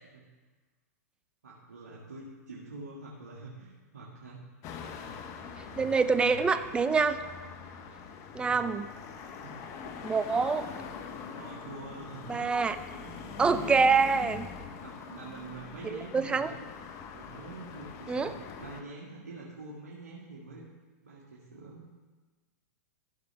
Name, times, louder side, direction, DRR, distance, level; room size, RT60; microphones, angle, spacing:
voice 1, 1.4-4.4 4.9-5.3 5.6-6.4 8.2-8.6 9.2-9.6 11.3-13.8 14.8-16.6 17.1-18.3 18.6-20.7 21.0-21.8, right 3 dB, 90° right, -6 dB, 2.0 m, -46 dB
sound 1, 4.6-18.8, left 6 dB, 35° left, 1.0 m, -43 dB
voice 2, 5.7-7.2 8.3-8.9 10.0-10.7 12.3-12.8 13.4-14.5 15.8-16.5 18.1-18.3, right 4 dB, 10° right, 10 dB, 0.5 m, -26 dB
14.5 x 6.7 x 3.5 m, 1.3 s
hypercardioid pair, 120°, 9 cm